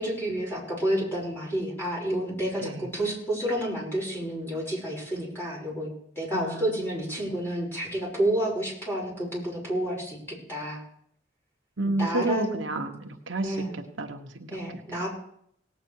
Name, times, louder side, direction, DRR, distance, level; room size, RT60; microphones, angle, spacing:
voice 1, 0.0-10.8 11.8-12.7 13.4-13.8 14.5-15.1, right 1 dB, 10° left, -4 dB, 6.0 m, -30 dB
voice 2, 6.3-7.3 11.8-14.5, right 2 dB, 80° right, 4 dB, 1.3 m, -31 dB
18.0 x 8.7 x 4.8 m, 0.67 s
head